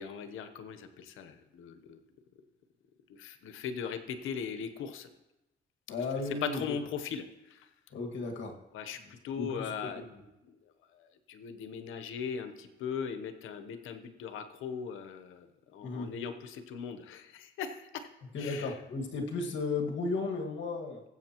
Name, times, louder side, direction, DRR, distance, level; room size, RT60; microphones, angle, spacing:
voice 1, 0.0-2.0 3.1-5.1 6.2-7.7 8.7-10.1 10.4-18.1 18.4-18.9, left 7 dB, 85° left, 8 dB, 1.0 m, -39 dB
voice 2, 5.9-6.6 7.9-8.5 9.4-9.7 10.1-10.2 15.8-16.1 18.3-21.0, left 3 dB, 70° left, 2 dB, 1.9 m, -34 dB
19.5 x 8.2 x 3.0 m, 0.97 s
cardioid pair, 90°, 20 cm